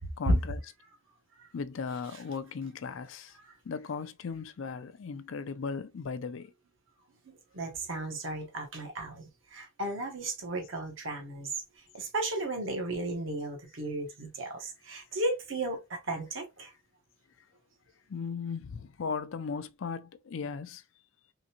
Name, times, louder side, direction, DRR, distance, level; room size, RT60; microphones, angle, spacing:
voice 1, 0.2-0.6 1.5-3.4 3.6-6.5 18.1-20.8, left 5 dB, 70° left, 0.4 m, -37 dB
voice 2, 7.3-11.5 11.9-16.7, right 1 dB, 65° right, 1.2 m, -34 dB
3.8 x 3.3 x 2.9 m
head